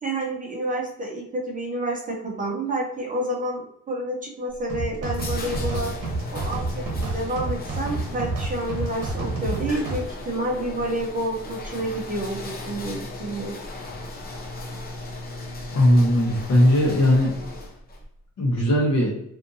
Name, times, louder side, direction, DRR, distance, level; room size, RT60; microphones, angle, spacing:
voice 1, 0.0-5.9 6.3-13.5, right 1 dB, 25° right, -2 dB, 0.5 m, -29 dB
sound 1, 4.5-18.0, left 2 dB, 30° left, 0.5 m, -36 dB
sound 2, 4.7-10.0, right 3 dB, 70° right, 0.8 m, -30 dB
voice 2, 15.7-17.3 18.4-19.1, left 1 dB, 55° left, -1 dB, 0.9 m, -18 dB
2.6 x 2.5 x 2.6 m, 0.74 s
wide cardioid pair, 170°, 32 cm